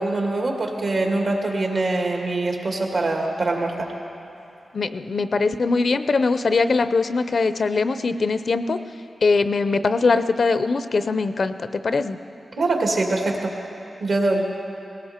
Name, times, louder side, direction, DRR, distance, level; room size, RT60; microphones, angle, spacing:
voice 1, 0.0-3.9 12.6-13.5 14.0-14.4, right 2 dB, 70° right, 1 dB, 2.2 m, -23 dB
voice 2, 4.7-8.8 9.2-12.2, left 4 dB, 60° left, 11 dB, 0.6 m, -21 dB
18.5 x 17.0 x 4.4 m, 2.8 s
wide cardioid pair, 75°, 0 cm